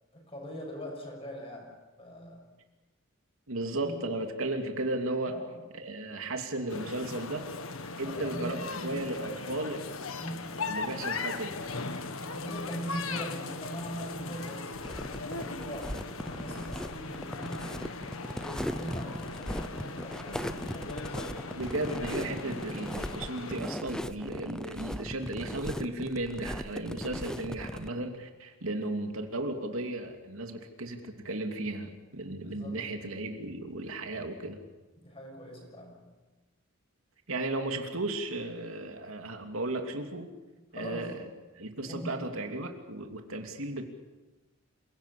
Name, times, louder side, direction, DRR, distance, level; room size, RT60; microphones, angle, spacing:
voice 1, 0.1-2.5 3.6-4.2 5.3-5.6 8.0-9.6 10.2-10.8 12.1-16.0 16.3-17.8 18.4-21.2 32.4-32.8 35.0-36.1 40.6-41.3 41.8-42.5, equal, 30° left, 1 dB, 6.7 m, -42 dB
voice 2, 3.5-5.4 5.7-7.5 8.0-9.8 10.6-11.6 21.5-34.6 37.3-40.3 40.7-41.2 41.6-43.8, right 2 dB, 90° right, 4 dB, 2.8 m, -35 dB
sound 1, 6.7-23.6, left 3 dB, 90° left, 1.7 m, -39 dB
sound 2, 14.7-27.9, equal, 5° left, 0.7 m, -38 dB
27.5 x 17.5 x 8.5 m, 1.2 s
head